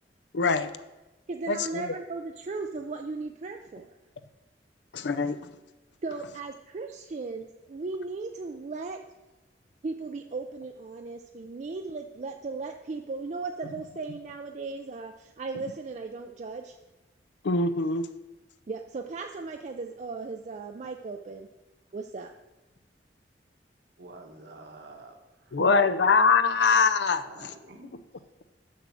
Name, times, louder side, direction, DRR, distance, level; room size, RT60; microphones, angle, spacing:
voice 1, 0.3-0.7 1.5-1.8 4.9-5.4 17.4-18.1 25.5-27.5, left 4 dB, 80° left, 12 dB, 0.5 m, -23 dB
voice 2, 1.3-3.9 6.0-9.0 9.8-16.8 18.7-21.5 21.9-22.3 25.6-25.9, right 3 dB, 40° right, 4 dB, 0.4 m, -37 dB
voice 3, 24.0-25.6 27.2-28.4, right 2 dB, 65° right, 3 dB, 1.2 m, -49 dB
6.6 x 6.4 x 6.2 m, 1.1 s
head